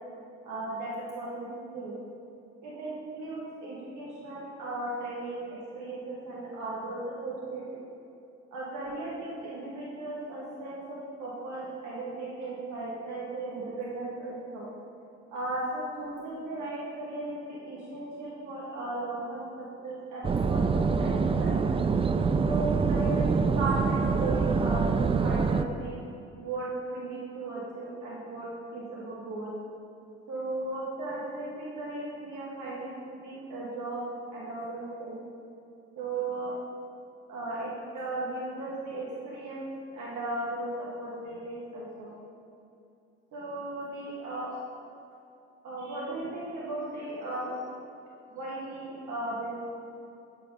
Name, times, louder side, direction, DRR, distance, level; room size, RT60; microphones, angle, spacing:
voice 1, 0.4-1.9 2.6-7.8 8.5-14.7 15.3-21.8 22.5-26.0 26.4-28.5 28.7-29.5 30.3-34.0 34.3-35.2 36.0-36.5 37.3-39.7 39.9-42.1 43.3-44.5 45.6-47.6 48.3-49.7, right 2 dB, 60° right, -6 dB, 1.4 m, -36 dB
sound 1, 20.2-25.6, right 5 dB, 20° right, 0.3 m, -25 dB
9.3 x 5.4 x 3.7 m, 2.7 s
hypercardioid pair, 50°, 34 cm